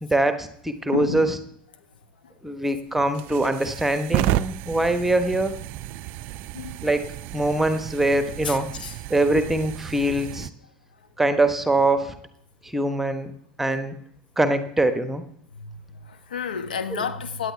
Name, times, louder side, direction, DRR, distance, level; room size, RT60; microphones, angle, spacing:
voice 1, 0.0-1.4 2.4-5.5 6.8-8.7 9.1-10.5 11.2-12.1 12.6-13.3 13.6-14.0 14.4-15.2 16.9-17.0, right 1 dB, 5° right, 1.2 m, -23 dB
voice 2, 0.9-1.3 6.5-6.8 8.4-8.9 15.6-15.7 16.1-17.5, left 6 dB, 70° left, 1.2 m, -30 dB
sound 1, 2.8-10.5, right 16 dB, 45° right, 0.4 m, -32 dB
17.0 x 9.8 x 3.4 m
figure-of-eight pair, 85°, 5 cm